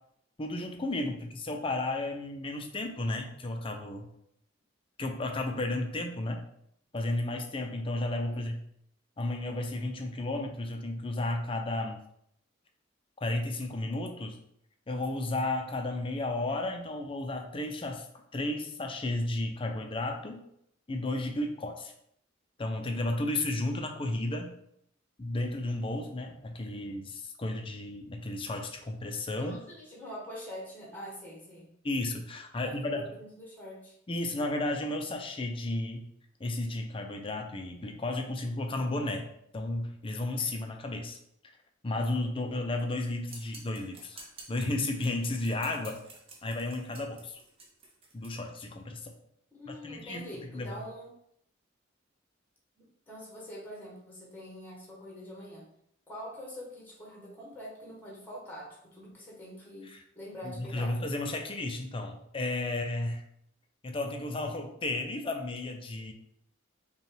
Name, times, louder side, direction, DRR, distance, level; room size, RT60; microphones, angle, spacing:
voice 1, 0.4-4.1 5.0-6.4 6.9-8.6 9.2-12.0 13.2-14.4 14.9-18.0 18.3-20.4 20.9-21.9 22.6-24.6 25.2-29.6 31.8-33.0 34.1-36.1 36.4-39.3 39.5-41.2 41.8-46.0 46.4-47.4 48.1-49.1 49.7-50.3 50.5-50.8 59.9-60.0 60.4-63.2 63.8-66.1, left 2 dB, 30° left, 4 dB, 0.5 m, -33 dB
voice 2, 29.4-31.7 32.5-34.0 49.5-51.1 52.8-55.7 56.1-59.9 60.1-61.0, equal, 10° left, -4 dB, 1.2 m, -45 dB
sound 1, 43.3-48.3, right 3 dB, 30° right, 0.8 m, -50 dB
5.2 x 2.3 x 3.3 m, 0.73 s
head